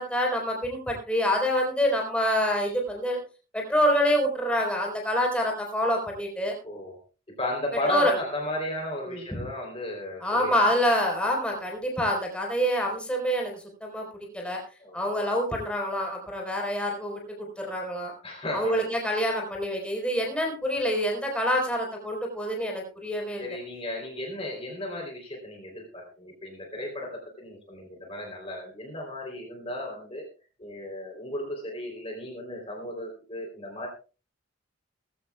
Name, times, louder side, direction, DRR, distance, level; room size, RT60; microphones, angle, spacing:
voice 1, 0.0-3.2 3.5-6.6 7.9-8.1 9.1-9.2 10.2-14.1 14.3-14.6 14.9-18.1 18.5-23.6, equal, 5° left, 0 dB, 4.1 m, -26 dB
voice 2, 6.6-7.0 7.3-10.5 14.8-15.1 18.2-18.8 23.4-30.3 30.6-33.9, left 1 dB, 25° left, 1 dB, 3.3 m, -35 dB
19.5 x 15.0 x 2.3 m, 0.34 s
head